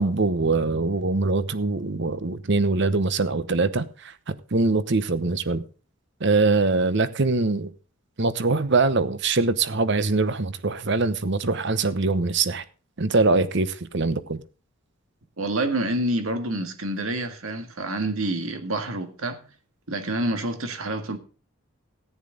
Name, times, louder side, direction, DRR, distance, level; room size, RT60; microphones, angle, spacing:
voice 1, 0.0-5.6 6.2-7.7 8.2-12.6 13.0-14.4, right 3 dB, 55° right, 0.9 m, -23 dB
voice 2, 15.4-19.4 19.9-21.2, right 1 dB, 85° right, 1.8 m, -27 dB
14.5 x 9.8 x 3.9 m
head